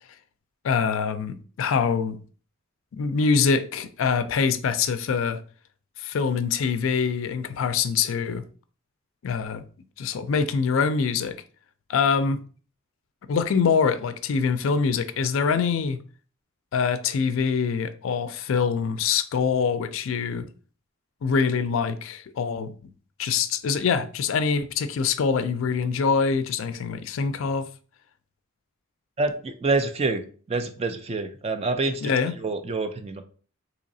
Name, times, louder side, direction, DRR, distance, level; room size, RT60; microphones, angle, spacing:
voice 1, 0.6-2.2 2.9-5.4 6.0-8.5 9.2-9.6 10.0-11.4 11.9-12.4 13.3-16.0 16.7-20.4 21.2-22.7 23.2-27.7 32.0-32.3, left 5 dB, 70° left, 0.4 m, -24 dB
voice 2, 29.2-32.1 32.4-33.2, right 3 dB, 30° right, 0.3 m, -27 dB
3.9 x 2.9 x 2.6 m
head